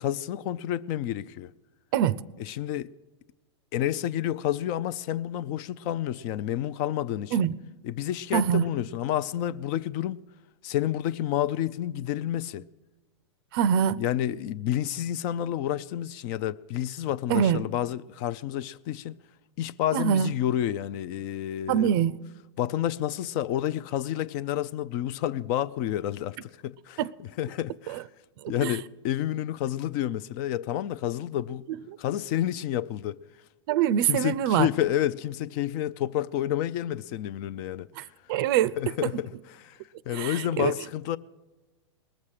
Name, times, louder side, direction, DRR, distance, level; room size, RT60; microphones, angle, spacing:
voice 1, 0.0-1.5 2.4-2.9 3.7-7.5 7.8-10.2 10.6-12.6 14.0-19.2 19.6-21.9 22.6-28.0 28.5-31.7 32.0-33.2 34.0-37.9 38.8-39.8 40.1-41.2, left 12 dB, 40° left, 0.5 m, -29 dB
voice 2, 8.3-8.7 13.5-14.0 17.3-17.6 19.9-20.3 21.7-22.2 27.0-27.1 27.9-28.0 28.4-28.8 33.7-34.7 38.0-38.7 40.1-40.7, right 9 dB, 50° right, 0.5 m, -24 dB
20.0 x 7.3 x 6.5 m
hypercardioid pair, 125°, 15 cm